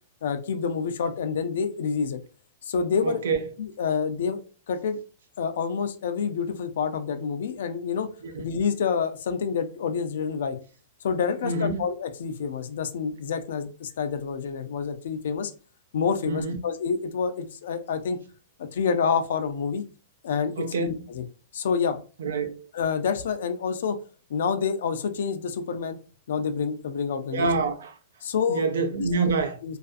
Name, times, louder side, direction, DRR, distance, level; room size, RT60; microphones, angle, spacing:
voice 1, 0.2-2.2 2.6-3.2 3.6-5.0 5.4-8.1 8.4-10.6 11.0-15.5 15.9-18.2 18.6-19.8 20.2-21.2 21.5-22.0 22.7-24.0 24.3-26.0 26.3-27.5 28.2-28.7 29.0-29.3 29.6-29.8, left 6 dB, 75° left, 0.4 m, -28 dB
voice 2, 3.0-3.4 8.2-8.5 11.4-11.8 16.2-16.6 20.6-21.1 22.2-22.7 27.3-27.9 28.5-29.8, right 4 dB, 85° right, 0.5 m, -27 dB
2.4 x 2.3 x 2.5 m
supercardioid pair, 150°, 0 cm